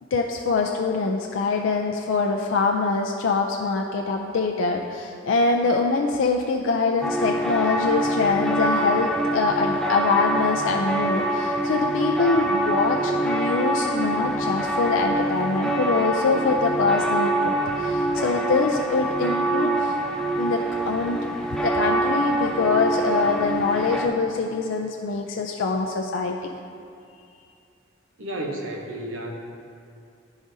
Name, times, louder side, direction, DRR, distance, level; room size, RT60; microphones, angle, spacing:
voice 1, 0.1-19.9 20.4-21.2 21.6-26.5, left 4 dB, 85° left, 2 dB, 0.4 m, -24 dB
sound 1, 7.0-24.1, right 1 dB, 5° left, 0.4 m, -25 dB
voice 2, 28.2-29.3, right 1 dB, 80° right, 0 dB, 0.9 m, -32 dB
11.0 x 4.9 x 2.7 m, 2.5 s
head